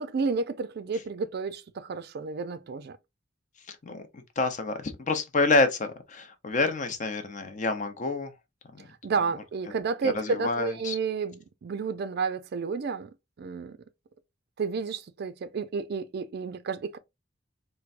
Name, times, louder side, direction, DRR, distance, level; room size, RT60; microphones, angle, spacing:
voice 1, 0.0-3.0 9.0-13.1 13.4-13.8 14.6-17.0, right 4 dB, 55° right, 0.4 m, -31 dB
voice 2, 3.7-8.3 8.7-8.9 10.0-10.9, left 3 dB, 40° left, 0.6 m, -28 dB
4.5 x 2.1 x 2.5 m
head